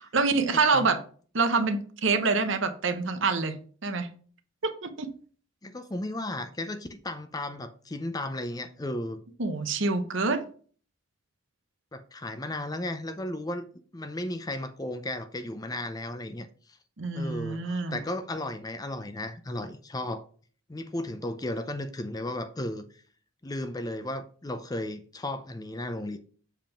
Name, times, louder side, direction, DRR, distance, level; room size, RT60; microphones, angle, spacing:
voice 1, 0.1-1.0 1.3-3.6 3.8-4.1 4.6-5.1 9.4-10.4 17.0-18.0, right 4 dB, 60° right, 0.9 m, -26 dB
voice 2, 5.6-9.2 11.9-13.6 13.9-16.8 17.1-20.2 20.7-23.0 23.4-26.2, left 1 dB, 15° left, 0.5 m, -34 dB
7.4 x 3.6 x 5.8 m
head